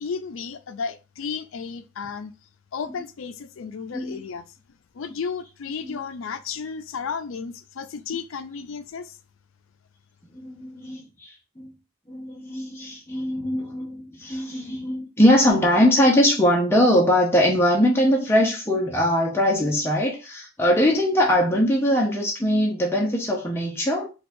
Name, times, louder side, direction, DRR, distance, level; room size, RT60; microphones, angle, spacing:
voice 1, 0.0-2.3 2.7-4.4 4.9-9.2, left 5 dB, 75° left, 0.4 m, -33 dB
voice 2, 10.3-11.7 12.1-24.1, equal, 10° left, 0.6 m, -21 dB
4.4 x 2.3 x 2.6 m
head